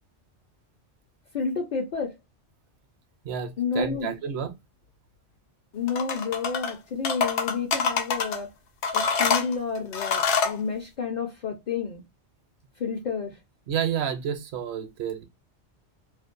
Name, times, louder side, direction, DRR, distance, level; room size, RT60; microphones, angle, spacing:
voice 1, 1.3-2.1 3.6-4.1 5.7-8.5 8.9-12.0 12.8-13.3, left 5 dB, 50° left, 0.6 m, -30 dB
voice 2, 3.2-4.5 13.7-15.3, right 8 dB, 70° right, 0.8 m, -30 dB
sound 1, 5.9-6.7 7.0-8.4 8.8-10.6, left 5 dB, 75° left, 0.9 m, -25 dB
2.5 x 2.1 x 2.4 m
omnidirectional pair, 1.2 m